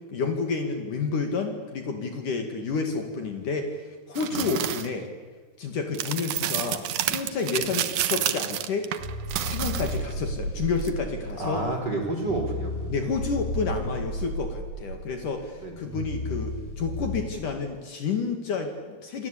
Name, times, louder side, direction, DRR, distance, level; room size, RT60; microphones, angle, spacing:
voice 1, 0.0-5.1 5.6-8.9 9.4-11.6 12.9-19.3, left 4 dB, 55° left, 5 dB, 3.5 m, -30 dB
sound 1, 4.1-4.9 5.9-10.1 10.8-10.9, right 12 dB, 65° right, 2.1 m, -29 dB
sound 2, 9.0-17.2, equal, 50° right, 7.6 m, -33 dB
voice 2, 11.4-13.2 15.6-15.7, right 2 dB, 25° right, 3 dB, 4.3 m, -30 dB
28.5 x 23.5 x 8.7 m, 1.4 s
omnidirectional pair, 4.8 m